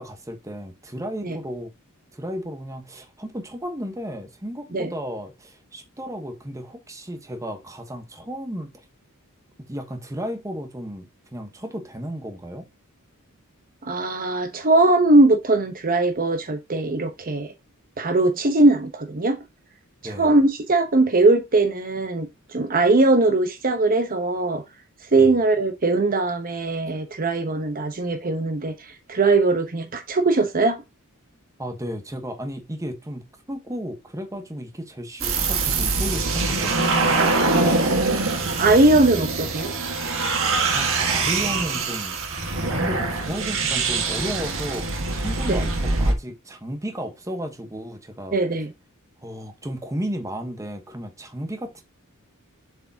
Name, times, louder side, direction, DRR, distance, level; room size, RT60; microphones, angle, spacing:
voice 1, 0.0-1.7 2.1-8.7 9.7-12.7 20.0-20.4 25.2-25.3 31.6-37.2 40.4-42.2 42.7-48.4 49.2-51.8, equal, 15° right, 1.1 m, -34 dB
voice 2, 13.8-17.5 18.0-19.4 20.0-24.6 25.1-30.8 37.6-39.7 45.5-45.7 48.3-48.7, right 2 dB, 40° right, 0.9 m, -20 dB
sound 1, 35.2-46.1, right 3 dB, 65° right, 1.6 m, -23 dB
7.2 x 4.9 x 2.8 m
head